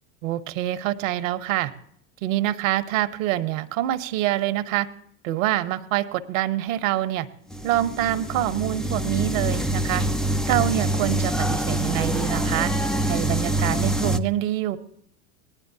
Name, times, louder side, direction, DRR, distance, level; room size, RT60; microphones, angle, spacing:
voice 1, 0.2-1.7 2.2-4.9 5.2-7.3 7.6-10.0 10.5-12.7 13.1-14.8, right 14 dB, 70° right, 10 dB, 1.0 m, -25 dB
sound 1, 7.5-14.2, right 1 dB, ahead, 0.4 m, -25 dB
17.5 x 11.0 x 2.7 m, 0.70 s
hypercardioid pair, 90°, 41 cm